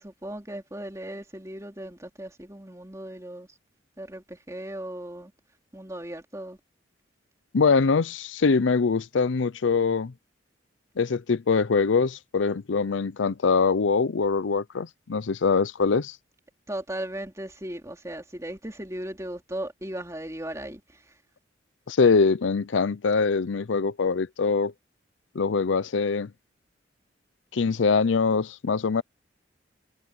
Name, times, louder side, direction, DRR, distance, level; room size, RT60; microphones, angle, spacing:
voice 1, 0.0-3.5 4.0-5.3 5.7-6.6 16.7-21.1, right 1 dB, 15° right, 2.8 m, -37 dB
voice 2, 7.5-10.1 11.0-16.2 21.9-24.7 25.3-26.3 27.5-29.0, left 4 dB, 85° left, 0.6 m, -23 dB
head